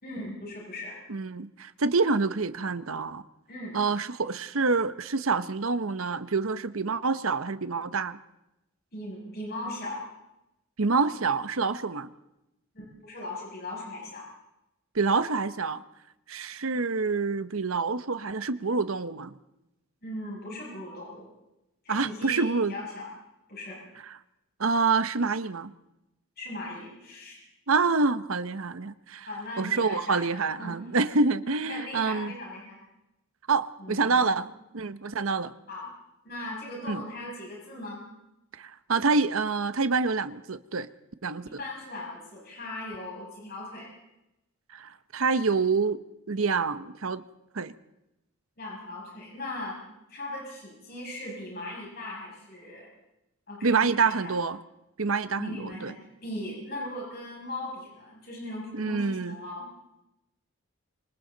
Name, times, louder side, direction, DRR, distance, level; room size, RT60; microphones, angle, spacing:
voice 1, 0.0-1.0 3.5-3.8 8.9-10.0 12.7-14.3 20.0-21.3 21.8-23.1 23.5-23.8 26.4-27.4 29.3-30.8 31.6-32.8 33.8-34.3 35.7-35.9 36.2-38.0 41.4-43.9 48.6-49.8 50.1-52.9 53.5-54.4 55.4-59.7, left 1 dB, 50° left, -3 dB, 6.7 m, -38 dB
voice 2, 1.1-3.2 3.7-8.2 10.8-12.1 14.9-15.8 16.3-19.3 21.9-22.7 24.6-25.7 27.7-29.3 29.6-32.3 33.5-34.5 34.7-35.5 36.9-37.0 38.5-40.9 41.2-41.5 44.7-46.0 46.3-47.2 47.5-47.7 53.6-54.6 55.0-55.9 58.7-59.4, right 4 dB, 70° right, 12 dB, 0.9 m, -27 dB
26.5 x 25.0 x 4.0 m, 0.91 s
head